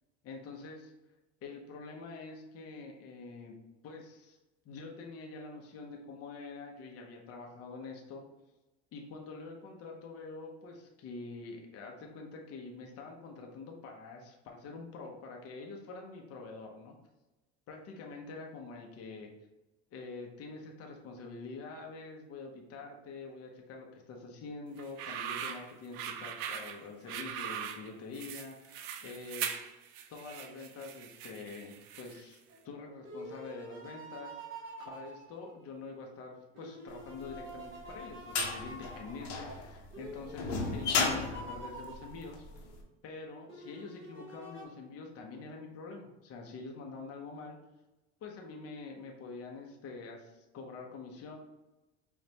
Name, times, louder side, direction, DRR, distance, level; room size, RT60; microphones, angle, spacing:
voice 1, 0.2-0.9 1.4-3.5 3.8-4.4 4.6-8.2 8.9-17.0 17.7-19.3 19.9-29.5 30.1-42.5 43.0-47.6 48.2-51.3, left 3 dB, 45° left, 1 dB, 0.8 m, -46 dB
sound 1, 24.8-32.3, right 8 dB, 70° right, 0.6 m, -41 dB
sound 2, 32.5-36.1 36.5-42.7 43.5-44.6, right 1 dB, 35° right, 1.3 m, -48 dB
sound 3, 37.3-42.6, left 4 dB, 65° left, 1.1 m, -34 dB
5.2 x 2.5 x 2.9 m, 1.0 s
supercardioid pair, 115°, 34 cm